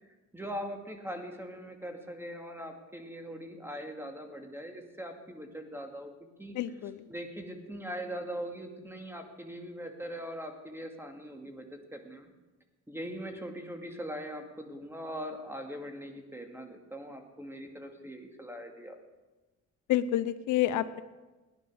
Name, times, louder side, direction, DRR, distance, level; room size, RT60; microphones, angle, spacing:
voice 1, 0.3-6.1 6.4-6.6 7.1-12.3 12.9-19.0, equal, 10° right, 4 dB, 2.2 m, -41 dB
voice 2, 6.5-7.1 19.9-21.0, left 12 dB, 80° left, 13 dB, 0.7 m, -29 dB
17.0 x 10.5 x 6.3 m, 1.1 s
cardioid pair, 90°, 30 cm